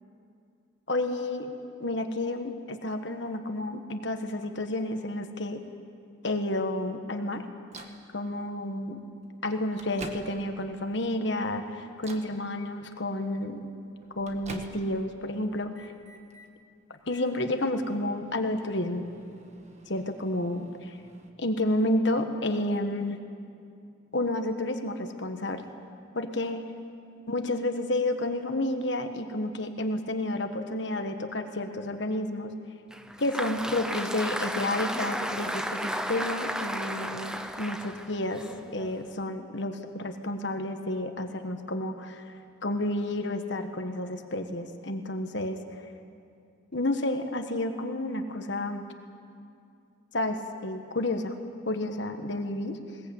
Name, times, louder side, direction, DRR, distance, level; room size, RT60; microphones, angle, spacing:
voice 1, 0.9-1.5 1.8-5.6 6.2-7.4 8.1-9.0 9.4-13.6 14.1-15.9 17.0-19.1 19.9-21.0 21.4-23.2 24.1-25.6 26.1-26.6 27.3-32.5 33.2-38.4 38.7-42.3 42.6-45.6 46.7-48.9 50.1-51.3 51.7-52.8, left 1 dB, 60° left, 6 dB, 1.4 m, -30 dB
Microwave oven, 7.7-8.0 9.0-9.1 9.5-10.7 11.2-11.5 12.0-12.4 13.6-15.1 15.4-16.5 17.0-21.3, right 2 dB, 35° right, 1.6 m, -47 dB
Applause, 32.9-39.2, equal, 5° right, 0.8 m, -34 dB
20.5 x 20.0 x 8.7 m, 2.4 s
head